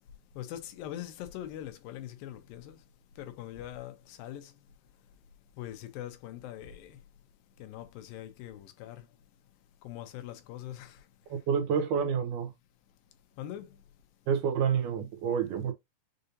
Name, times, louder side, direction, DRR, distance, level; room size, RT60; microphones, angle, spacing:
voice 1, 0.4-2.8 3.2-4.5 5.6-7.0 7.6-9.1 9.8-11.0 13.4-13.7, left 12 dB, 85° left, 2.5 m, -42 dB
voice 2, 11.3-12.5 14.3-15.7, right 7 dB, 75° right, 2.2 m, -28 dB
6.6 x 2.6 x 2.7 m
omnidirectional pair, 4.0 m